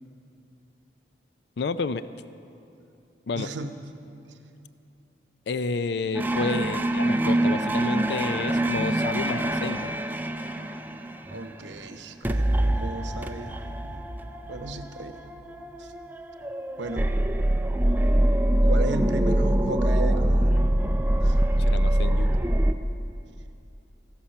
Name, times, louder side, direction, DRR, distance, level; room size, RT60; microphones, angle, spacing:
voice 1, 1.6-2.0 3.3-3.5 5.5-9.9 21.7-22.3, left 4 dB, 65° left, 14 dB, 0.4 m, -30 dB
voice 2, 3.3-3.8 11.3-14.0 14.5-15.2 15.8-15.9 16.8-17.1 18.6-20.6 21.2-21.4, right 2 dB, 80° right, 8 dB, 0.8 m, -35 dB
sound 1, 6.1-11.9 12.2-22.7, right 1 dB, 10° right, 0.4 m, -24 dB
14.5 x 13.0 x 5.6 m, 2.7 s
head